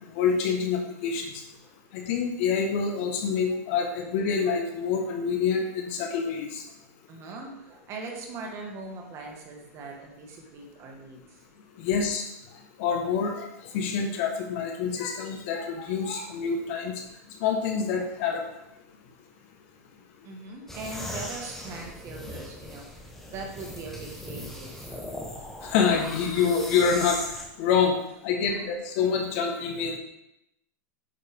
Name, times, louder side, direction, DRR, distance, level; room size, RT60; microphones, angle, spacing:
voice 1, 0.1-1.3 1.9-6.6 11.8-12.3 12.8-13.5 13.7-17.0 17.4-18.4 25.6-27.2 27.6-27.9 28.2-30.0, left 6 dB, 55° left, 3 dB, 1.3 m, -26 dB
voice 2, 6.8-11.4 20.2-22.9 23.3-25.1 28.4-28.7, right 3 dB, 35° right, 1 dB, 1.5 m, -41 dB
sound 1, 20.7-27.5, left 1 dB, 5° left, 1.1 m, -39 dB
9.0 x 4.3 x 3.6 m, 0.85 s
supercardioid pair, 145°, 9 cm